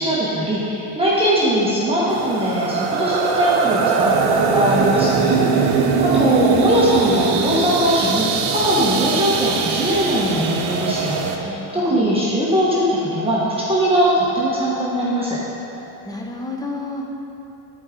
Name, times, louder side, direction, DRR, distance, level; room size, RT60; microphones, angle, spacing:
voice 1, 0.0-5.8 6.0-15.4, equal, 15° right, -7 dB, 1.2 m, -20 dB
sound 1, 2.1-11.4, right 5 dB, 75° right, 0.9 m, -21 dB
voice 2, 5.4-6.0 11.4-12.0 16.0-17.1, left 2 dB, 10° left, 0 dB, 1.0 m, -31 dB
11.5 x 4.8 x 3.8 m, 3.0 s
cardioid pair, 110°, 39 cm